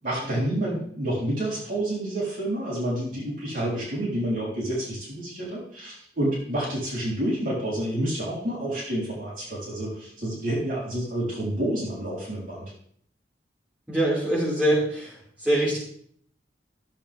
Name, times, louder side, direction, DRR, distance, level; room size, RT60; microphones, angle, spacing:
voice 1, 0.0-12.7, right 1 dB, 50° right, -7 dB, 4.0 m, -29 dB
voice 2, 13.9-15.1 15.4-15.8, right 1 dB, 5° right, -9 dB, 5.2 m, -23 dB
14.5 x 7.8 x 3.5 m, 0.62 s
head